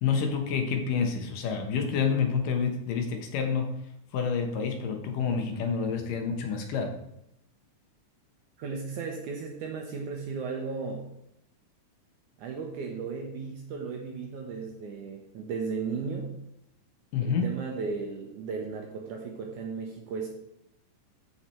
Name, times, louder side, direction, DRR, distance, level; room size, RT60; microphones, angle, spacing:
voice 1, 0.0-3.8 4.1-6.9 17.1-17.5, left 6 dB, 75° left, 4 dB, 2.8 m, -28 dB
voice 2, 8.6-11.1 12.4-16.4 17.2-20.3, right 5 dB, 70° right, 1 dB, 2.3 m, -35 dB
14.0 x 4.9 x 4.4 m, 0.80 s
omnidirectional pair, 4.0 m